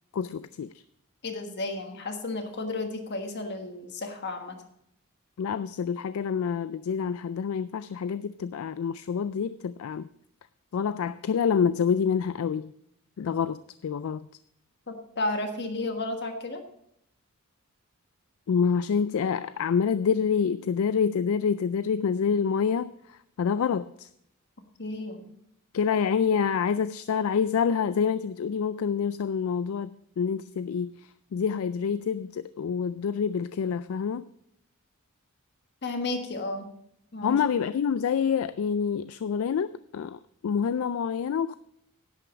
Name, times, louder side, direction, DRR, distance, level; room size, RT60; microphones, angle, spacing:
voice 1, 0.1-0.7 5.4-10.1 10.7-12.7 13.2-14.3 18.5-24.1 25.7-34.3 37.2-41.5, left 6 dB, 70° left, 15 dB, 0.3 m, -27 dB
voice 2, 1.2-4.5 14.9-16.6 24.8-25.3 35.8-36.7 37.1-37.4, left 2 dB, 55° left, 6 dB, 1.5 m, -32 dB
10.5 x 9.0 x 5.0 m, 0.74 s
head